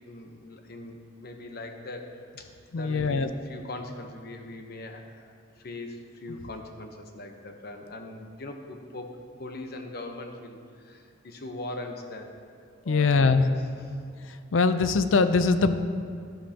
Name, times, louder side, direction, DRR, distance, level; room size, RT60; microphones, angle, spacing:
voice 1, 0.1-5.3 5.6-9.1 9.4-10.6 10.8-12.3 12.8-14.0, left 2 dB, 55° left, 4 dB, 0.9 m, -40 dB
voice 2, 2.7-3.3 12.9-13.4 14.5-15.7, left 4 dB, 90° left, 11 dB, 0.5 m, -22 dB
11.5 x 11.5 x 2.9 m, 2.2 s
head